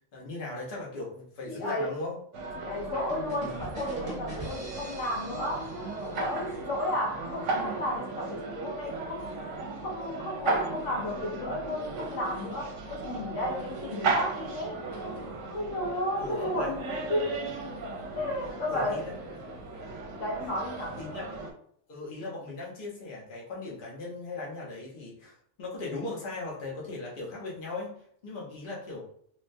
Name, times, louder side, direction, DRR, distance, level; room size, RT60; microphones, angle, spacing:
voice 1, 0.1-2.2 16.2-16.7 18.7-19.1 21.0-21.3 21.9-28.0 28.2-29.0, left 2 dB, 45° left, -4 dB, 1.0 m, -38 dB
voice 2, 1.5-1.9 2.6-5.7 6.0-9.5 9.8-14.8 15.5-17.5 18.1-19.1 20.2-21.0, left 1 dB, 75° left, -1 dB, 1.1 m, -33 dB
sound 1, 2.3-21.5, right 3 dB, 75° right, 0.9 m, -36 dB
sound 2, 3.1-6.8, right 1 dB, 40° right, 1.0 m, -42 dB
3.2 x 2.2 x 2.6 m, 0.65 s
omnidirectional pair, 1.3 m